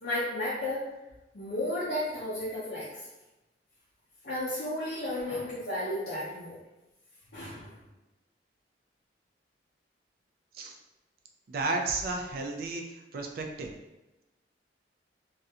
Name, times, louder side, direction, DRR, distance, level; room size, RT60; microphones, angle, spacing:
voice 1, 0.0-0.9 1.3-3.0 4.2-6.6 7.3-7.8, left 1 dB, 65° left, -10 dB, 0.6 m, -33 dB
voice 2, 11.5-12.8 13.1-13.7, right 3 dB, 55° right, 3 dB, 0.3 m, -32 dB
2.4 x 2.1 x 2.7 m, 1.0 s
head